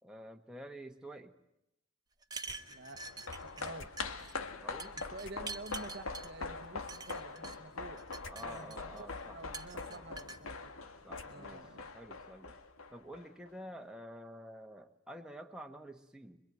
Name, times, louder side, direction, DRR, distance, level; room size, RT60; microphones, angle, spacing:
voice 1, 0.0-1.3 4.5-5.0 8.3-9.4 9.7-10.0 11.0-11.6 11.9-12.6 12.9-16.4, right 1 dB, 5° right, 3 dB, 1.4 m, -49 dB
sound 1, 2.2-3.7 4.0-4.3 4.8-6.3 6.9-7.6 8.0-9.0 9.5-10.4, right 4 dB, 20° right, 1.2 m, -45 dB
sound 2, 2.4-11.8, left 3 dB, 60° left, 2.4 m, -58 dB
voice 2, 2.7-3.9 5.1-8.0 8.4-10.7 11.3-11.9, right 2 dB, 50° right, 9 dB, 1.1 m, -50 dB
sound 3, 2.9-13.5 13.8-13.9, left 3 dB, 80° left, 1.8 m, -43 dB
26.0 x 23.0 x 9.2 m, 0.83 s
head